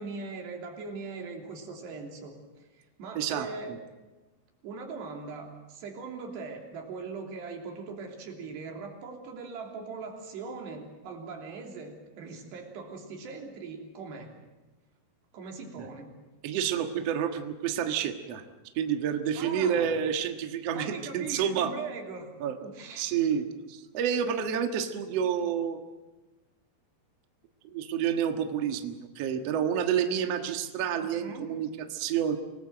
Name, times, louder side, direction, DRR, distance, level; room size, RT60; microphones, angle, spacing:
voice 1, 0.0-2.3 2.8-3.8 4.6-14.3 15.3-16.1 19.4-19.9 20.7-22.3 22.6-23.1 31.2-31.5, right 4 dB, 85° right, 2 dB, 5.2 m, -40 dB
voice 2, 3.2-3.5 15.8-15.9 16.4-18.4 18.8-21.7 22.4-22.6 23.0-25.8 27.7-32.4, right 8 dB, 55° right, 6 dB, 2.0 m, -29 dB
26.5 x 19.0 x 7.8 m, 1.1 s
omnidirectional pair, 4.7 m